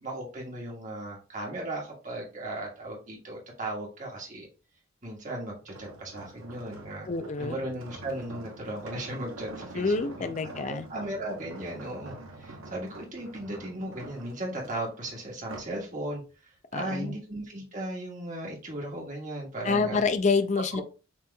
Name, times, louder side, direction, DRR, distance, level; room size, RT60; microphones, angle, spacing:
voice 1, 0.0-4.5 5.0-7.1 7.4-20.0 20.7-20.8, right 1 dB, 35° right, 1.5 m, -37 dB
sound 1, 5.6-15.8 16.3-16.6, right 2 dB, 75° right, 1.0 m, -46 dB
voice 2, 7.1-7.6 9.8-10.8 16.7-17.1 19.6-20.8, left 4 dB, 35° left, 0.4 m, -27 dB
5.9 x 3.1 x 2.3 m
head